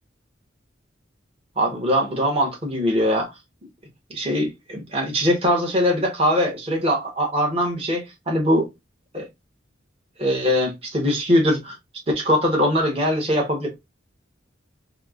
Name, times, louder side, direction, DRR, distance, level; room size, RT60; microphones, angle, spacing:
voice 1, 1.6-3.3 4.1-8.7 9.1-9.3 10.2-11.8 12.1-13.8, equal, 30° right, 1.0 m, -22 dB
4.2 x 2.1 x 2.3 m
head